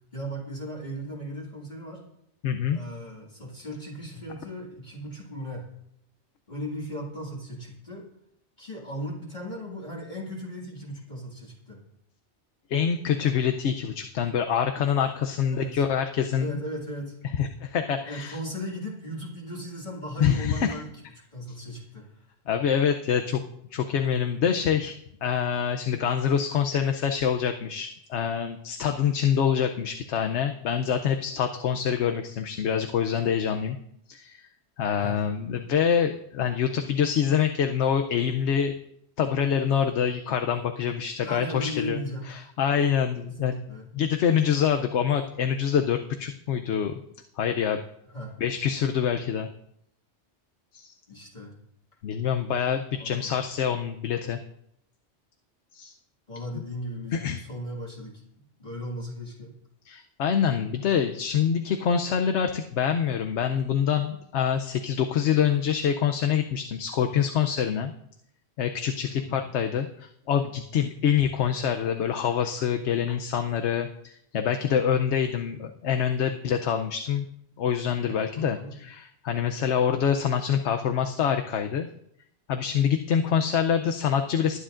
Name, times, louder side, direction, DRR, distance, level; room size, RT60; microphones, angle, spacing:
voice 1, 0.1-2.0 2.7-5.7 6.5-8.1 8.6-11.8 15.5-15.8 16.4-17.2 18.1-20.9 21.2-22.1 35.0-35.2 41.2-42.5 43.3-43.9 48.1-48.4 51.1-51.6 53.0-53.4 56.3-58.2 58.6-59.5 69.2-69.5 78.4-78.7, equal, 40° left, -5 dB, 2.2 m, -37 dB
voice 2, 2.4-2.8 12.7-16.5 17.4-18.4 20.2-20.8 22.5-23.4 23.7-24.9 25.2-33.8 34.1-34.4 34.8-38.7 39.2-42.0 42.3-43.6 43.9-46.9 47.4-47.8 48.4-49.5 50.7-50.9 52.0-54.4 55.7-55.9 57.1-57.4 59.8-67.9 68.6-77.2 77.6-78.6 78.8-81.9 82.5-84.6, left 8 dB, 85° left, 6 dB, 1.0 m, -25 dB
20.5 x 10.0 x 2.5 m, 0.73 s
omnidirectional pair, 1.1 m